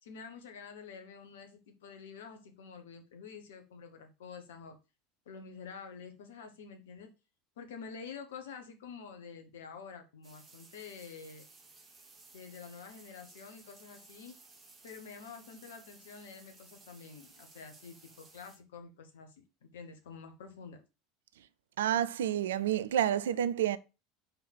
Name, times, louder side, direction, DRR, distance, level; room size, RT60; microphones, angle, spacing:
voice 1, 0.0-4.8 5.2-7.1 7.6-11.5 12.3-14.3 14.8-20.8, left 5 dB, 65° left, 1.3 m, -48 dB
sound 1, 10.2-18.6, right 3 dB, 25° right, 2.1 m, -58 dB
voice 2, 21.8-23.8, right 10 dB, 65° right, 0.4 m, -29 dB
5.5 x 4.4 x 6.1 m
figure-of-eight pair, 75°, 0 cm